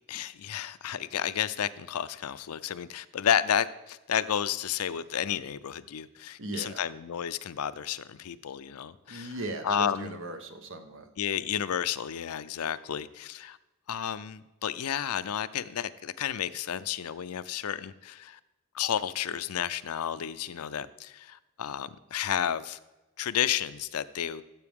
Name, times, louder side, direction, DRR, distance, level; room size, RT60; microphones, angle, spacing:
voice 1, 0.1-9.3 9.6-10.2 11.2-13.6 13.9-18.4 18.7-22.8 23.2-24.4, left 9 dB, 80° left, 0.5 m, -31 dB
voice 2, 6.4-6.8 9.1-11.1, right 2 dB, 60° right, 1.1 m, -37 dB
14.5 x 7.6 x 3.6 m
head